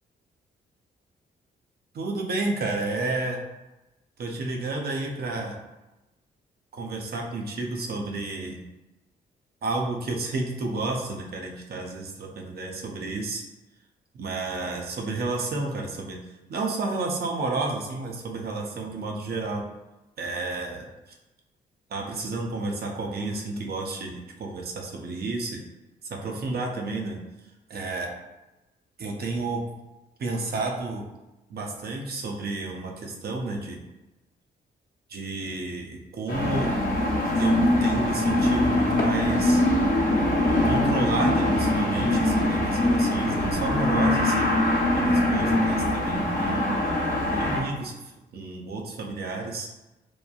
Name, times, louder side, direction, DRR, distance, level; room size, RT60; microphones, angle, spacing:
voice 1, 1.9-3.4 4.2-5.6 6.7-8.6 9.6-13.4 14.1-16.2 16.5-19.6 20.2-20.9 21.9-25.6 26.2-27.2 27.7-28.1 29.0-29.6 30.2-31.0 31.5-33.8 35.1-36.7 37.4-39.6 40.6-44.5 45.0-46.8 47.4-47.9 48.3-49.7, right 2 dB, 55° right, 1 dB, 0.6 m, -31 dB
sound 1, 36.3-47.6, left 1 dB, 45° left, 0.9 m, -23 dB
3.0 x 2.1 x 2.4 m, 1.0 s
supercardioid pair, 50°, 20 cm